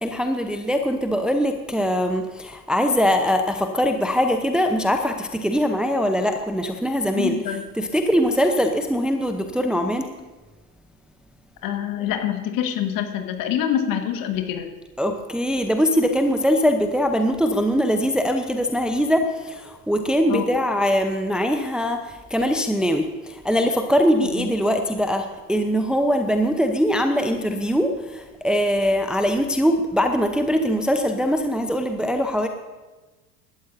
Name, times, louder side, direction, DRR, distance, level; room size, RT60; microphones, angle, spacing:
voice 1, 0.0-7.4 7.8-10.1 15.0-32.5, equal, ahead, 5 dB, 0.9 m, -22 dB
voice 2, 7.1-7.6 11.6-14.7 20.3-20.5 24.3-24.5, left 10 dB, 45° left, 5 dB, 1.9 m, -25 dB
25.0 x 12.5 x 2.8 m, 1.2 s
figure-of-eight pair, 75°, 46 cm